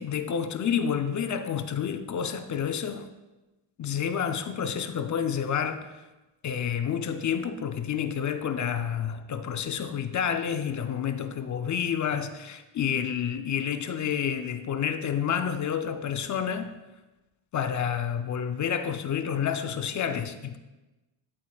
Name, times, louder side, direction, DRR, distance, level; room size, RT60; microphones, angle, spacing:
voice 1, 0.0-3.1 3.8-5.9 6.4-16.7 17.5-20.6, left 8 dB, 35° left, 0.5 m, -29 dB
12.5 x 7.6 x 2.3 m
cardioid pair, 130°, 50 cm